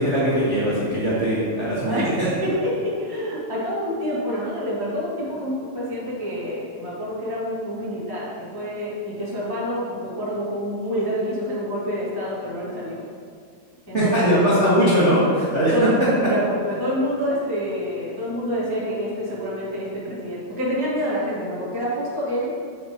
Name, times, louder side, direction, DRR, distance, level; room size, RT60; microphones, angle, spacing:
voice 1, 0.0-2.3 13.9-16.3, equal, 40° right, -10 dB, 1.0 m, -20 dB
voice 2, 2.4-13.0 13.9-14.3 15.7-15.9 16.2-22.5, equal, 15° left, -9 dB, 0.8 m, -27 dB
8.5 x 7.6 x 2.9 m, 2.1 s
omnidirectional pair, 3.8 m